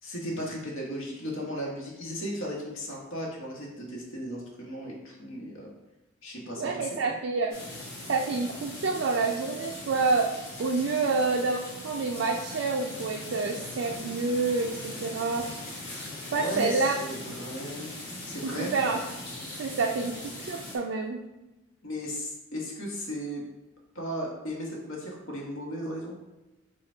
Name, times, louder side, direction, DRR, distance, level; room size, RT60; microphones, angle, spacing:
voice 1, 0.0-5.7 6.2-7.2 16.3-18.0 18.2-18.7 21.8-23.4 23.9-26.2, equal, 75° left, -3 dB, 1.3 m, -36 dB
voice 2, 6.6-7.5 8.1-15.5 16.3-16.9 17.3-17.4 18.4-19.0 19.6-21.2, right 4 dB, 65° right, 1 dB, 0.4 m, -28 dB
sound 1, 7.5-20.8, left 2 dB, 55° left, 1.5 m, -40 dB
4.9 x 2.3 x 4.4 m, 1.0 s
head